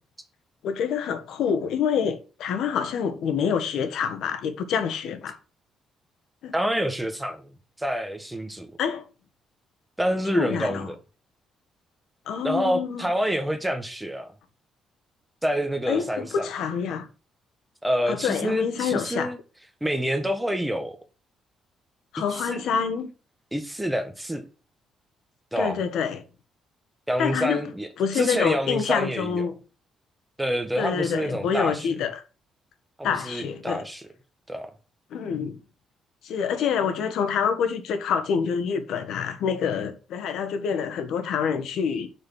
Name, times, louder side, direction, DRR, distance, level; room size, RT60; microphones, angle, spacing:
voice 1, 0.6-5.4 6.4-6.5 8.8-9.0 10.3-10.9 12.3-13.1 15.9-17.1 18.1-19.3 22.1-23.1 25.6-26.2 27.2-27.6 28.0-29.6 30.8-32.2 33.0-33.8 35.1-35.6 36.2-42.1, left 7 dB, 75° left, 1.5 m, -26 dB
voice 2, 6.5-7.5 7.8-8.7 10.0-11.0 12.4-14.3 15.4-16.5 17.8-19.4 19.8-21.0 22.4-22.6 23.5-24.4 25.5-25.8 27.1-27.9 28.1-29.5 30.4-31.9 33.0-34.0 34.5-34.7, equal, 5° right, 1.4 m, -27 dB
6.3 x 6.3 x 7.2 m
cardioid pair, 125°, 0 cm